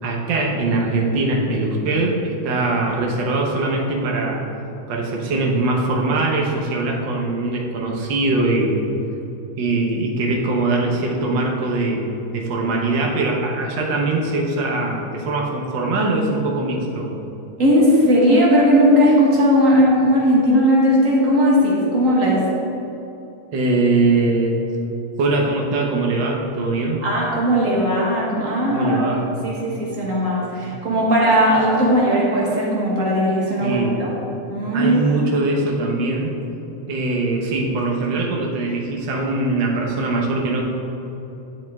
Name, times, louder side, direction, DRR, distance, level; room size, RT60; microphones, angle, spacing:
voice 1, 0.0-4.4 4.9-8.8 9.6-12.0 12.3-17.1 23.5-24.6 25.2-27.0 28.7-29.4 30.6-30.7 33.6-34.0 34.7-36.4 36.9-40.6, right 2 dB, 65° right, -1 dB, 1.1 m, -22 dB
voice 2, 17.6-22.4 27.0-34.1 34.5-35.1, equal, 40° right, -4 dB, 1.1 m, -17 dB
11.5 x 7.8 x 3.6 m, 3.0 s
omnidirectional pair, 3.5 m